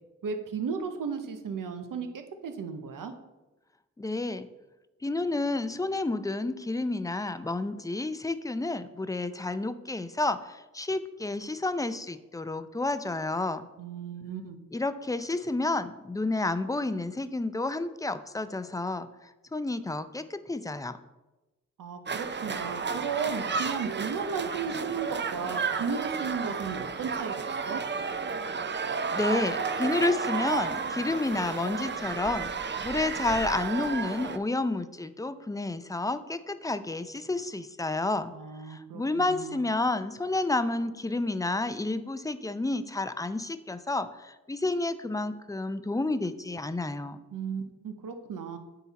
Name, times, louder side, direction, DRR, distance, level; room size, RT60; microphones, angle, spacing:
voice 1, 0.2-3.1 13.8-14.6 21.8-27.8 38.3-39.6 47.3-48.6, right 5 dB, 90° right, 6 dB, 0.8 m, -35 dB
voice 2, 4.0-4.5 5.0-13.7 14.7-21.0 29.1-32.5 32.8-38.3 38.6-47.2, left 2 dB, 10° left, 12 dB, 0.5 m, -30 dB
sound 1, 22.1-34.4, right 5 dB, 35° right, 0.5 m, -32 dB
9.3 x 4.0 x 4.0 m, 1.1 s
cardioid pair, 50°, 31 cm